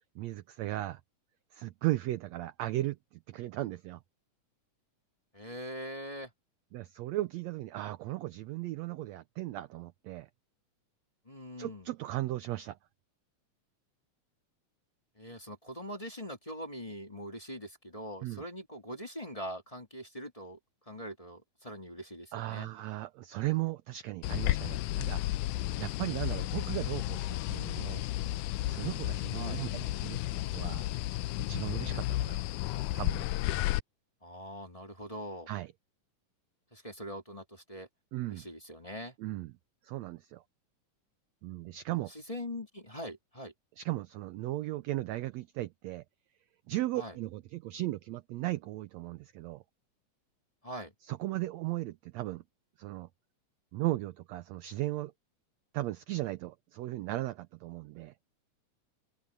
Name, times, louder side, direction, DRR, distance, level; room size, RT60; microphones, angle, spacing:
voice 1, 0.1-1.0 1.5-4.0 6.7-10.3 11.6-12.8 18.2-18.4 22.3-25.2 25.8-28.1 28.7-30.9 31.5-32.4 32.9-33.3 35.5-35.7 38.1-38.5 39.2-39.5 39.8-40.4 41.4-42.1 43.8-46.0 46.7-49.6 51.0-52.4 52.8-53.1 53.7-55.1 55.7-58.1, right 17 dB, 75° right, 1.6 m, -36 dB
voice 2, 5.3-6.3 11.2-11.9 15.2-20.6 20.9-22.7 29.3-29.6 34.2-35.5 36.7-37.9 38.3-39.1 42.1-43.5 46.9-47.2 50.6-50.9, equal, 10° left, 2.4 m, -42 dB
sound 1, 24.2-33.8, left 15 dB, 85° left, 2.1 m, -33 dB
open air
omnidirectional pair, 3.7 m